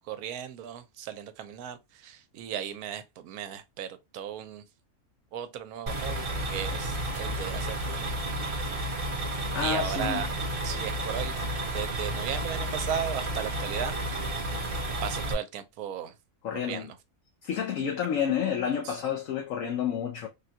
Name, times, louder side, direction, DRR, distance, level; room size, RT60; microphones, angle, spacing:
voice 1, 0.0-4.6 5.3-8.1 9.6-10.3 10.6-11.4 11.7-14.0 15.0-16.1 16.6-17.0 18.8-19.0, right 9 dB, 80° right, 1.1 m, -36 dB
sound 1, 5.9-15.3, right 1 dB, 35° right, 0.7 m, -32 dB
voice 2, 9.5-10.2 16.4-16.9 17.4-20.3, left 8 dB, 70° left, 1.0 m, -29 dB
3.6 x 2.2 x 2.6 m
omnidirectional pair, 1.5 m